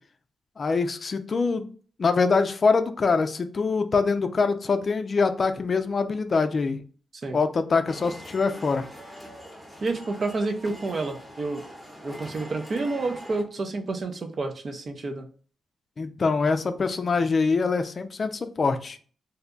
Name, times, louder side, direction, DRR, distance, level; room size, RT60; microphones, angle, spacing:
voice 1, 0.6-1.7 2.0-6.8 7.3-8.9 16.0-19.0, left 4 dB, 45° left, 9 dB, 0.4 m, -24 dB
sound 1, 7.9-13.4, equal, 10° right, 0.9 m, -43 dB
voice 2, 9.8-11.6 12.0-15.3, right 3 dB, 50° right, 5 dB, 0.5 m, -29 dB
2.7 x 2.2 x 3.8 m, 0.42 s
cardioid pair, 80°, 0 cm